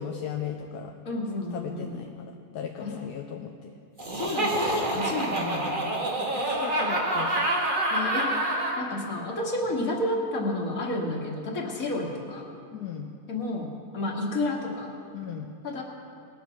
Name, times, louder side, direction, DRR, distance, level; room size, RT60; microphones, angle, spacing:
voice 1, 0.0-0.9 1.5-3.7 6.2-7.5 12.7-13.1 15.1-15.5, left 8 dB, 80° left, 3 dB, 1.2 m, -37 dB
voice 2, 1.1-2.0 2.8-2.9 4.1-5.9 7.9-8.3 8.8-12.4 13.3-14.9 15.6-15.8, left 1 dB, 60° left, 0 dB, 2.1 m, -31 dB
Laughter, 4.0-8.8, right 1 dB, 30° right, 1.6 m, -27 dB
20.0 x 7.2 x 5.8 m, 2.4 s
omnidirectional pair, 1.7 m